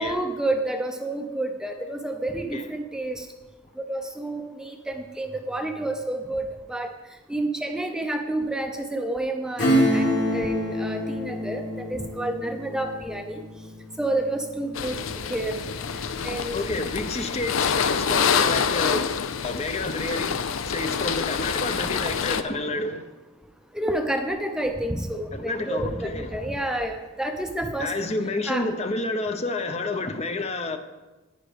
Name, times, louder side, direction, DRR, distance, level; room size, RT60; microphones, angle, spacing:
voice 1, 0.0-3.3 3.8-6.9 7.3-11.6 11.9-13.4 14.0-15.0 15.3-15.6 16.2-16.7 23.7-27.9 28.5-28.7, right 1 dB, 5° right, 0.6 m, -29 dB
Acoustic guitar / Strum, 9.6-15.8 16.2-16.3, equal, 60° left, 3.3 m, -27 dB
sound 1, 14.7-22.4, left 6 dB, 85° left, 0.5 m, -26 dB
voice 2, 16.5-23.1 25.3-26.4 27.8-30.8, left 2 dB, 30° left, 0.7 m, -29 dB
9.9 x 9.8 x 5.1 m
head